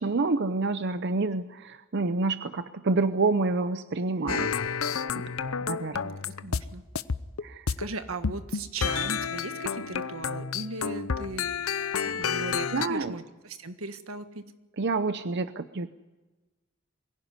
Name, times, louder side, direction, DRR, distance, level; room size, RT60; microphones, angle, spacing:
voice 1, 0.0-4.5 5.1-5.2 5.7-6.2 7.4-7.7 12.7-13.2 14.8-15.9, right 3 dB, 55° right, 11 dB, 0.7 m, -28 dB
sound 1, 4.3-6.7 7.0-7.9 8.2-12.9, left 6 dB, 80° left, 0.8 m, -30 dB
voice 2, 5.9-6.8 7.8-11.5 12.0-14.4, right 3 dB, 85° right, 9 dB, 1.6 m, -38 dB
23.0 x 16.5 x 9.6 m, 1.2 s
head